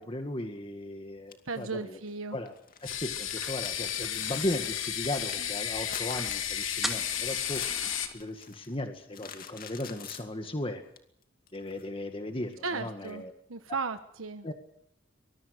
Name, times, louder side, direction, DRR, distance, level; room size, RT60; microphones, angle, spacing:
voice 1, 0.0-2.0 2.3-2.5 2.8-7.6 8.1-10.8 11.5-13.3 14.4-14.5, left 1 dB, 25° left, 6 dB, 1.9 m, -36 dB
sound 1, 1.3-1.6 2.1-2.2 2.4-8.7 9.1-10.3 11.0-11.1 11.5-12.1 13.0-13.1, left 8 dB, 45° left, 2.5 m, -46 dB
voice 2, 1.5-2.4 12.6-14.5, right 4 dB, 85° right, 9 dB, 1.3 m, -36 dB
sound 2, 2.8-8.1, left 10 dB, 75° left, 2.6 m, -33 dB
sound 3, 3.1-5.5 5.8-5.9 6.1-6.4 6.8-8.1, equal, ahead, 2.3 m, -41 dB
25.0 x 21.5 x 6.6 m, 0.71 s
head